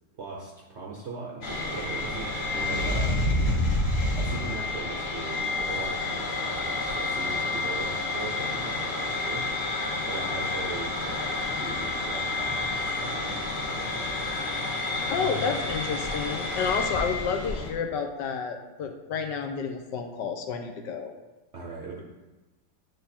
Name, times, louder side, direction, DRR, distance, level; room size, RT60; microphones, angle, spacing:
voice 1, 0.2-3.2 4.1-9.5 10.1-13.9 21.5-22.0, right 4 dB, 60° right, -2 dB, 0.7 m, -40 dB
sound 1, 1.4-17.7, left 2 dB, 40° left, 1.2 m, -29 dB
voice 2, 15.0-21.1, left 6 dB, 70° left, 4 dB, 1.2 m, -30 dB
9.3 x 3.3 x 4.2 m, 1.2 s
omnidirectional pair, 2.1 m